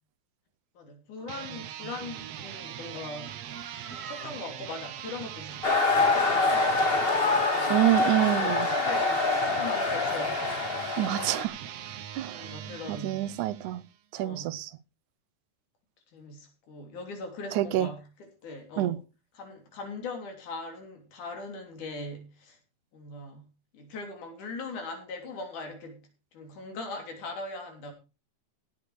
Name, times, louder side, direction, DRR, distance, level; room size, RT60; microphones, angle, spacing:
voice 1, 0.7-3.4 3.9-10.6 12.3-13.3 14.2-14.6 16.1-19.0 19.4-22.6 22.9-23.5 23.7-27.9, left 3 dB, 80° left, 4 dB, 4.6 m, -40 dB
sound 1, 1.2-14.0, right 10 dB, 65° right, 1.9 m, -41 dB
sound 2, 3.1-4.4 5.6-7.3 8.2-9.3, right 4 dB, 45° right, 7.5 m, -45 dB
sound 3, 5.6-11.5, left 3 dB, 30° left, 1.1 m, -25 dB
voice 2, 7.7-8.7 11.0-11.6 12.2-12.5 12.9-13.8 14.1-14.7 17.5-17.9 18.8-19.0, right 14 dB, 85° right, 15 dB, 2.2 m, -27 dB
16.5 x 8.0 x 4.9 m, 0.32 s
omnidirectional pair, 3.5 m